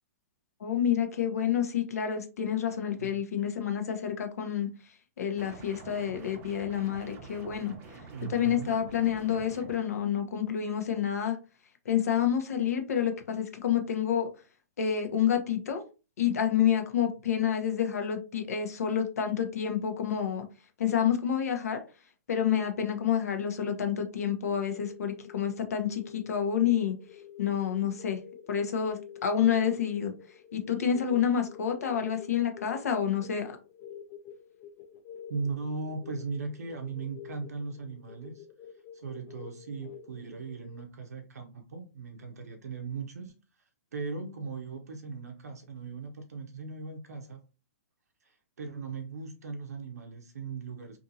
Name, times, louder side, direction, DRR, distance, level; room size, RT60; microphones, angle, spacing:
voice 1, 0.6-4.7 5.2-7.7 8.3-11.4 11.8-14.3 14.8-15.8 16.2-20.4 20.8-21.8 22.3-26.9 27.4-28.2 28.5-30.1 30.5-33.6, left 8 dB, 75° left, 0.8 m, -28 dB
sound 1, 5.4-9.8, right 3 dB, 25° right, 0.7 m, -48 dB
voice 2, 8.1-8.8 35.3-38.5 38.9-43.3 43.9-47.4 48.2-51.0, right 4 dB, 80° right, 0.6 m, -38 dB
sound 2, 24.5-40.8, left 9 dB, 30° left, 0.3 m, -49 dB
2.6 x 2.6 x 2.6 m
hypercardioid pair, 130°, 8 cm